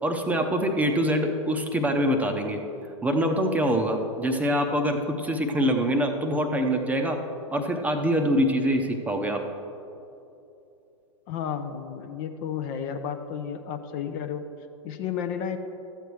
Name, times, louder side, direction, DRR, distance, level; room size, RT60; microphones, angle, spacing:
voice 1, 0.0-2.6 3.0-7.2 7.5-9.4, equal, 10° right, 4 dB, 0.7 m, -24 dB
voice 2, 11.3-14.4 14.8-15.6, left 8 dB, 40° left, 8 dB, 0.6 m, -32 dB
13.5 x 7.8 x 3.2 m, 2.8 s
figure-of-eight pair, 100°, 17 cm